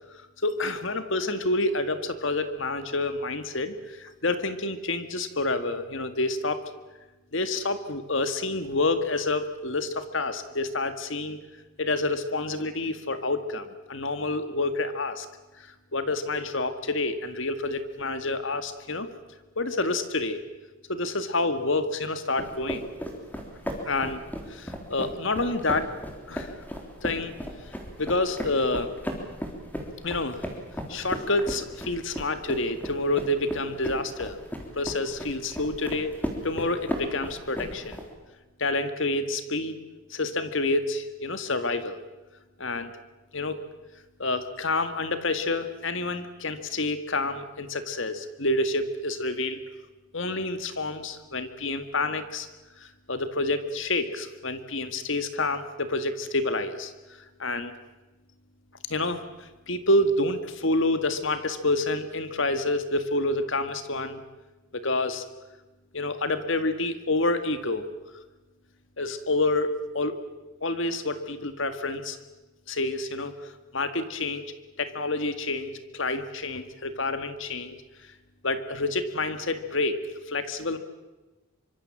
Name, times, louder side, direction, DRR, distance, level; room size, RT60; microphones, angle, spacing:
voice 1, 0.1-6.6 7.3-11.4 11.8-15.3 15.6-19.1 19.6-20.4 20.9-22.9 23.8-24.2 24.5-25.9 26.3-26.5 27.0-27.3 28.0-28.9 30.0-30.4 30.9-34.4 34.7-36.2 36.4-38.0 38.6-39.8 40.1-42.0 42.6-42.9 43.3-43.6 44.2-49.6 50.1-52.5 52.8-56.9 57.4-57.7 58.9-64.2 64.7-65.2 65.9-67.9 69.0-70.2 70.6-72.2 72.7-74.5 74.8-77.8 78.4-80.0 80.3-80.8, left 2 dB, 60° left, 10 dB, 1.9 m, -28 dB
sound 1, 22.4-38.1, equal, 10° left, 3.5 m, -36 dB
25.5 x 24.5 x 7.6 m, 1.1 s
head